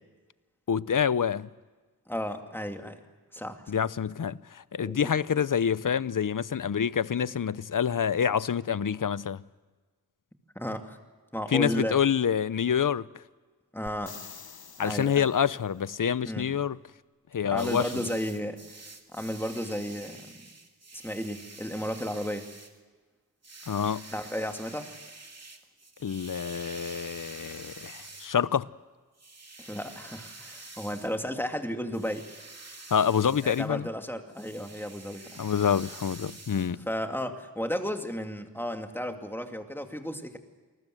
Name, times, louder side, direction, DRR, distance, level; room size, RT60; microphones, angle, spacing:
voice 1, 0.7-1.5 3.7-9.4 11.5-13.2 14.8-16.8 17.3-17.9 23.7-24.1 26.0-28.7 32.9-33.9 35.4-36.9, left 8 dB, 60° left, 0.7 m, -27 dB
voice 2, 2.1-3.0 3.3-3.6 4.8-5.0 10.5-11.0 11.3-12.0 13.7-14.2 14.8-15.3 16.2-16.5 17.4-18.6 19.1-20.5 20.9-22.5 24.1-24.9 29.6-32.3 33.4-35.4 36.9-40.4, equal, 5° left, 2.5 m, -33 dB
sound 1, 13.9-15.7 19.5-19.6, left 6 dB, 80° left, 1.2 m, -47 dB
Reibung - Stoff Drüberstreichen Fegen, 17.6-22.8 23.4-28.4 29.2-31.2 31.9-33.7 34.3-36.7, right 3 dB, 45° right, 2.4 m, -47 dB
28.0 x 20.0 x 7.8 m
wide cardioid pair, 55°, 37 cm